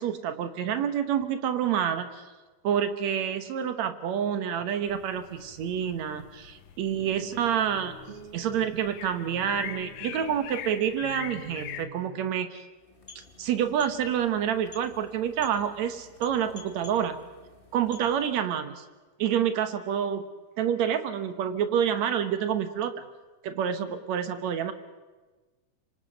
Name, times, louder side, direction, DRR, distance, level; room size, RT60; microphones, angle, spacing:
voice 1, 0.0-2.2 2.6-8.0 8.3-12.6 13.4-17.2 17.7-18.8 19.2-20.2 20.6-22.9 23.4-24.7, right 9 dB, 60° right, 9 dB, 2.2 m, -28 dB
sound 1, 4.9-11.9, left 11 dB, 80° left, 2.5 m, -43 dB
sound 2, 6.9-12.3, right 4 dB, 45° right, 2.1 m, -46 dB
sound 3, 12.7-18.5, left 4 dB, 45° left, 0.7 m, -51 dB
25.5 x 25.5 x 5.3 m, 1.2 s
omnidirectional pair, 3.9 m